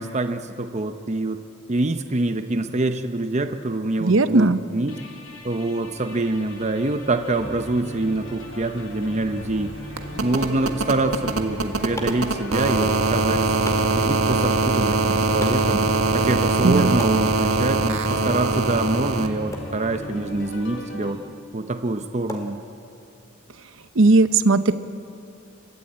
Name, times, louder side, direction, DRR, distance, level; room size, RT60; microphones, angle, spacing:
voice 1, 0.0-1.4 1.7-4.9 5.4-9.7 10.2-13.5 13.7-15.8 16.1-21.2 21.5-22.6, right 2 dB, 30° right, 7 dB, 0.7 m, -25 dB
voice 2, 4.0-4.6 16.6-16.9 24.0-24.7, right 3 dB, 65° right, 12 dB, 0.8 m, -17 dB
sound 1, 4.9-21.2, left 1 dB, 65° left, 3.0 m, -38 dB
sound 2, 8.1-8.2 8.4-19.3 20.7-20.8, right 3 dB, 85° right, 1.5 m, -23 dB
sound 3, 11.3-23.2, left 1 dB, 15° left, 2.6 m, -42 dB
29.5 x 13.5 x 8.7 m, 2.6 s
head